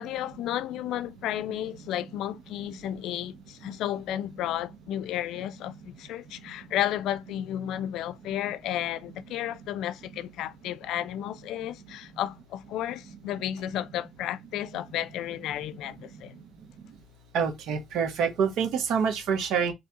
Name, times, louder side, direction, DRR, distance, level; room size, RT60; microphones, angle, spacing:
voice 1, 0.0-16.4, left 12 dB, 75° left, 0.4 m, -33 dB
voice 2, 17.3-19.7, right 6 dB, 70° right, 1.2 m, -26 dB
4.0 x 3.2 x 3.7 m
cardioid pair, 110°, 0 cm